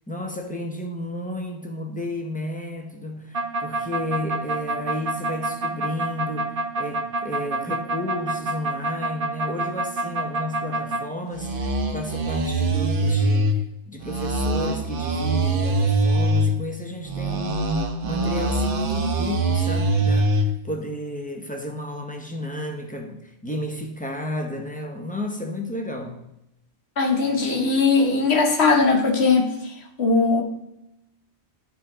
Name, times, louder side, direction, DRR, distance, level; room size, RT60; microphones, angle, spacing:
voice 1, 0.1-17.7 18.0-26.2, left 1 dB, 10° left, 0.9 m, -32 dB
sound 1, 3.3-11.0 11.3-13.5 14.0-16.5 17.1-20.5, right 2 dB, 50° right, 1.0 m, -24 dB
voice 2, 27.0-30.4, left 4 dB, 65° left, 1.4 m, -20 dB
11.0 x 4.6 x 3.8 m
omnidirectional pair, 1.2 m